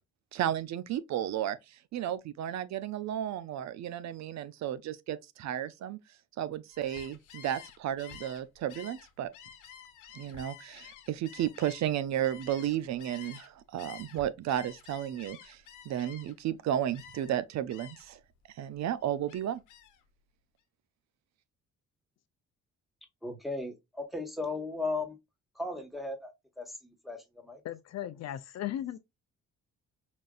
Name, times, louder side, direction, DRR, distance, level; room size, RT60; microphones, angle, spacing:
voice 1, 0.3-6.0 6.4-9.3 10.1-18.2 18.5-19.6, right 11 dB, 65° right, 0.5 m, -33 dB
Gull seagull, 6.7-13.5 13.8-16.5 16.9-17.4 17.7-18.2 18.5-20.0, left 8 dB, 85° left, 0.9 m, -50 dB
voice 2, 23.2-25.2 25.5-26.3 26.6-27.6, left 3 dB, ahead, 1.2 m, -36 dB
voice 3, 27.6-29.0, left 12 dB, 60° left, 0.5 m, -36 dB
5.1 x 2.5 x 2.3 m
cardioid pair, 90°, 30 cm